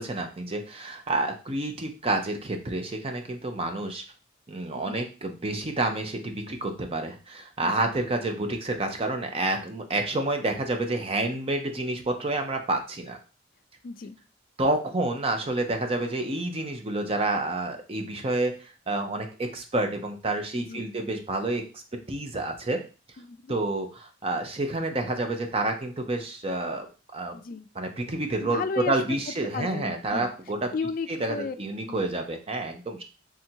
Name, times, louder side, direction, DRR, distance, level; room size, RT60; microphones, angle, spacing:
voice 1, 0.0-4.0 4.5-13.2 14.6-21.8 22.1-22.8 23.5-27.4 27.8-30.7 31.1-33.0, right 2 dB, 30° right, 5 dB, 0.6 m, -29 dB
voice 2, 13.8-14.2 20.5-20.9 23.2-23.6 27.3-27.7 28.4-28.9 29.5-30.3 30.7-31.6 31.9-32.0, left 4 dB, 45° left, 9 dB, 0.3 m, -34 dB
3.7 x 2.7 x 4.4 m, 0.34 s
head